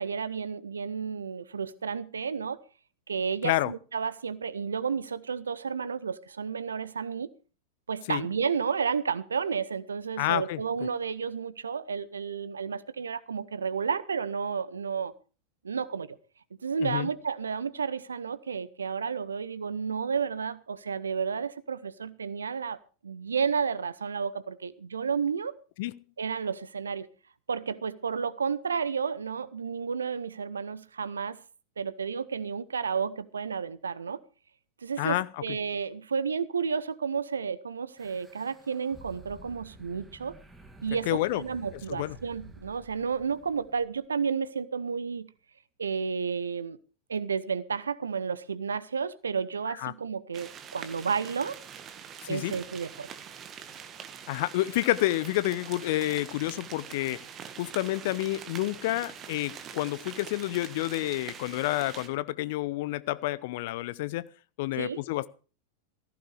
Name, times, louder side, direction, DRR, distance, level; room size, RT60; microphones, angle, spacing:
voice 1, 0.0-2.6 3.1-7.3 7.9-15.1 15.6-16.2 16.6-22.8 23.0-25.5 26.2-27.1 27.5-31.4 31.8-34.2 34.8-40.4 40.8-45.3 45.8-46.8 47.1-51.6 52.3-53.1 64.7-65.0, right 6 dB, 70° right, 0.9 m, -31 dB
voice 2, 10.2-10.9 16.8-17.1 25.8-25.9 35.0-35.3 41.1-41.4 41.9-42.1 49.8-49.9 52.2-52.5 54.3-57.2 57.6-64.3 64.6-65.3, left 17 dB, 50° left, 0.7 m, -29 dB
sound 1, 38.0-43.9, right 2 dB, 10° right, 2.3 m, -51 dB
sound 2, 50.3-62.1, right 8 dB, 30° right, 1.7 m, -44 dB
18.0 x 15.0 x 3.4 m
figure-of-eight pair, 90°, 0 cm